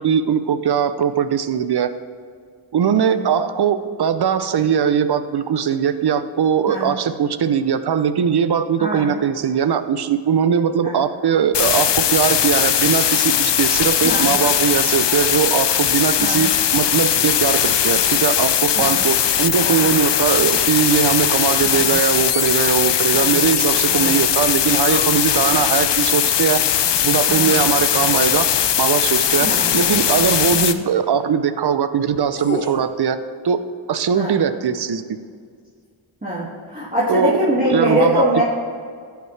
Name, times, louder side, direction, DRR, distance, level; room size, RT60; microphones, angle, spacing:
voice 1, 0.0-1.9 2.7-26.6 27.0-28.5 28.8-29.5 29.7-33.2 33.4-33.6 33.9-35.2 37.1-37.4 37.7-38.4, right 7 dB, 55° right, 12 dB, 0.6 m, -20 dB
sound 1, 11.5-30.7, left 10 dB, 65° left, 0.6 m, -19 dB
voice 2, 21.6-22.0 23.1-23.4 23.9-24.2 27.3-27.6 29.4-29.7 30.5-30.7 34.1-34.4 36.2-38.4, equal, 15° right, -8 dB, 2.1 m, -23 dB
sound 2, 24.9-25.1 27.4-27.7 29.1-29.2 29.7-30.0 32.0-32.8, left 2 dB, 25° left, 0.8 m, -29 dB
14.5 x 8.2 x 3.3 m, 2.1 s
wide cardioid pair, 70°, 47 cm